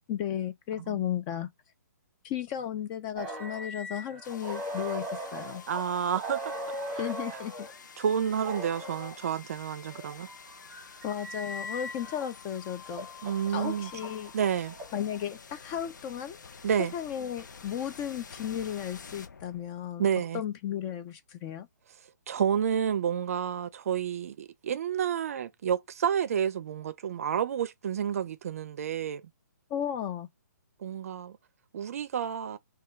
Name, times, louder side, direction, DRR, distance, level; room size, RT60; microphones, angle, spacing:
voice 1, 0.1-1.5 2.2-5.6 6.9-7.7 11.0-13.1 13.5-14.3 14.9-16.4 16.9-20.0 20.3-21.7 29.7-30.3, left 10 dB, 20° left, 0.3 m, -34 dB
sound 1, 3.2-7.7 8.4-9.2 9.9-12.3 12.8-15.2, equal, 10° right, 1.4 m, -39 dB
sound 2, 4.2-20.1, left 6 dB, 80° left, 0.7 m, -49 dB
voice 2, 5.7-6.5 6.9-7.0 8.0-10.3 13.2-13.9 14.3-14.8 16.6-16.9 20.0-20.4 22.3-29.2 30.8-31.4 31.7-32.6, right 8 dB, 50° right, 0.5 m, -30 dB
3.3 x 2.3 x 4.3 m
hypercardioid pair, 155°, 10 cm